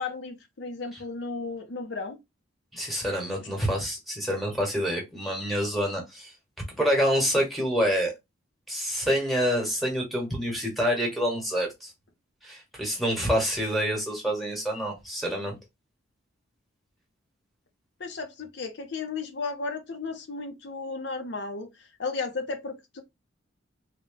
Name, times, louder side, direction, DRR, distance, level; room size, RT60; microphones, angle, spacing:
voice 1, 0.0-2.2 18.0-21.7 22.0-23.0, left 4 dB, 55° left, 0.6 m, -34 dB
voice 2, 2.7-6.3 6.7-8.1 8.7-11.9 12.4-15.5, equal, ahead, 1.2 m, -27 dB
3.6 x 2.2 x 3.8 m
head